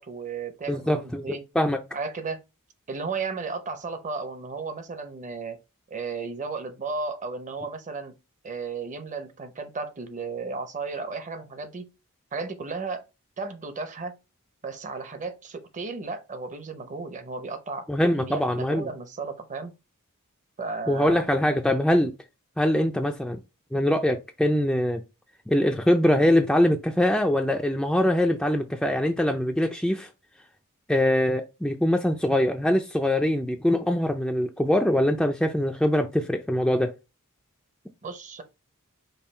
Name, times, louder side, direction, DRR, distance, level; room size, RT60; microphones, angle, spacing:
voice 1, 0.0-1.4 1.9-2.4 2.9-5.6 5.9-8.1 8.4-11.9 12.3-13.1 13.4-14.2 14.6-17.9 18.2-19.7 20.6-21.3 38.0-38.4, right 4 dB, 35° right, 0.7 m, -34 dB
voice 2, 0.7-1.8 17.9-18.9 20.9-22.1 22.6-23.4 23.7-25.0 25.5-30.1 30.9-36.9, left 1 dB, 5° left, 0.3 m, -23 dB
5.4 x 2.3 x 4.3 m
head